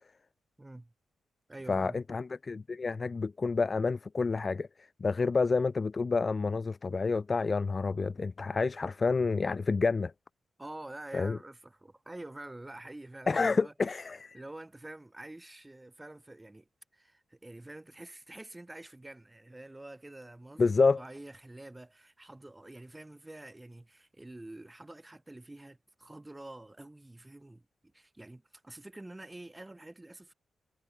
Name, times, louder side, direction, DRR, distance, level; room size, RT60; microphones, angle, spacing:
voice 1, 0.6-0.9 1.5-2.0 10.6-14.1 14.3-16.7 16.9-27.7 27.9-30.3, right 2 dB, 15° right, 4.6 m, -47 dB
voice 2, 1.7-4.7 5.0-10.1 11.1-11.4 13.3-14.4 20.6-21.0, left 4 dB, 35° left, 0.7 m, -29 dB
cardioid pair, 85°, 0 cm